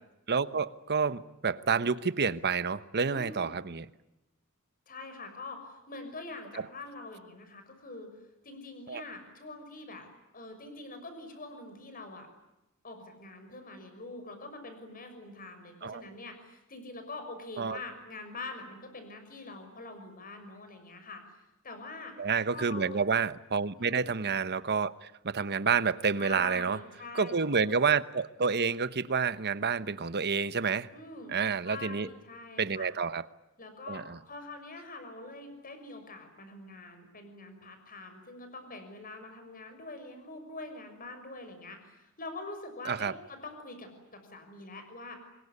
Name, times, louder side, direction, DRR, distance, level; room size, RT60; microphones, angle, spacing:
voice 1, 0.3-3.8 8.9-9.0 15.8-16.0 17.6-17.8 22.2-26.8 27.1-30.9 31.3-32.1 32.6-33.2 33.9-34.2 42.9-43.1, right 5 dB, 50° right, 1.0 m, -29 dB
voice 2, 3.0-3.6 4.9-8.1 8.4-12.3 12.8-21.2 21.6-22.1 22.5-23.0 23.8-24.1 26.2-27.6 30.9-31.4 31.7-32.9 33.6-45.2, left 2 dB, 40° left, 6.2 m, -44 dB
26.0 x 22.5 x 9.8 m
head